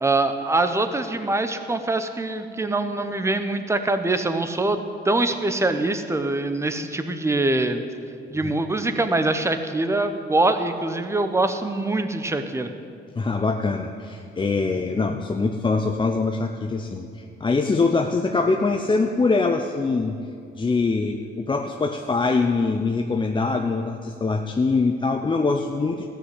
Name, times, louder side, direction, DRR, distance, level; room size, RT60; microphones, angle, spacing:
voice 1, 0.0-4.8 5.0-7.8 8.3-12.7, right 2 dB, 15° right, 8 dB, 0.9 m, -23 dB
voice 2, 13.2-20.2 20.6-26.1, left 3 dB, 25° left, 4 dB, 0.6 m, -23 dB
14.0 x 6.4 x 7.9 m, 2.4 s
cardioid pair, 90°, 20 cm